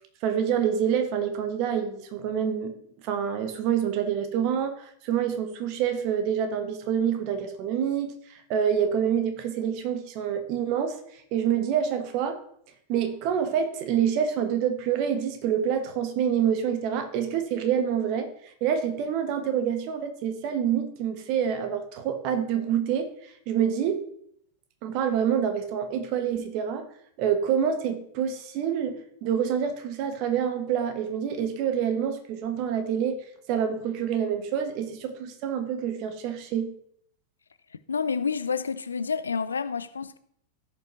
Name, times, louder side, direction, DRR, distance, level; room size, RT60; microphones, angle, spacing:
voice 1, 0.2-2.7 3.0-11.0 11.3-12.4 12.9-23.1 23.5-24.0 24.8-26.9 27.2-33.2 33.5-36.7, right 8 dB, 45° right, 1.2 m, -27 dB
voice 2, 37.9-40.2, left 5 dB, 75° left, 0.4 m, -29 dB
15.5 x 5.3 x 3.0 m
figure-of-eight pair, 90°, 0 cm